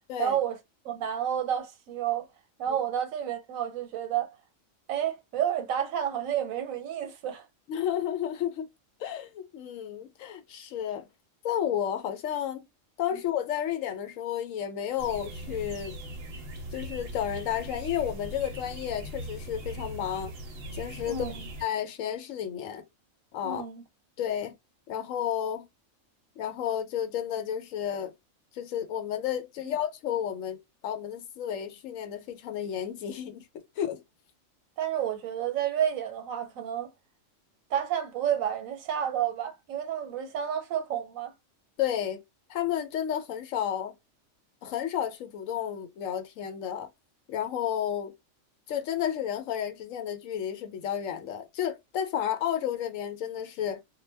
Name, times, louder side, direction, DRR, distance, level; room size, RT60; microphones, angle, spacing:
voice 1, 0.2-0.6 0.8-2.3 2.6-4.3 4.9-7.4 13.1-13.2 21.1-21.5 23.4-23.8 29.6-29.7 34.8-36.9 37.7-41.3, right 9 dB, 85° right, 1.1 m, -30 dB
voice 2, 7.7-8.7 9.0-11.1 11.4-12.7 13.0-16.0 16.7-20.3 20.7-21.2 21.6-22.8 23.3-23.6 24.2-24.5 24.9-25.7 26.4-28.1 28.5-34.0 41.8-42.2 42.5-43.9 44.6-46.9 47.3-48.1 48.7-53.8, left 10 dB, 80° left, 1.0 m, -32 dB
sound 1, 15.0-21.6, right 1 dB, 55° right, 0.8 m, -40 dB
2.2 x 2.1 x 3.2 m
omnidirectional pair, 1.4 m